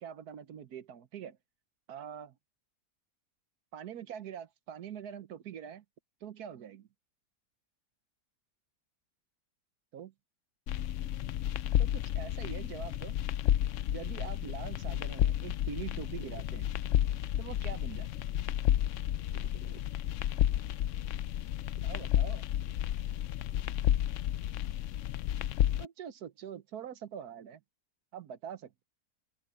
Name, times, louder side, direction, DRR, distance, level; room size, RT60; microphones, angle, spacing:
voice 1, 0.0-1.4 1.9-2.3 3.7-5.8 6.2-6.9 9.9-10.1 11.8-13.2 13.9-16.7 17.4-18.3 19.3-19.8 21.8-22.4 25.8-27.6 28.1-28.8, right 8 dB, 70° right, 1.4 m, -44 dB
sound 1, 10.7-25.9, left 12 dB, 70° left, 0.7 m, -31 dB
open air
omnidirectional pair, 1.7 m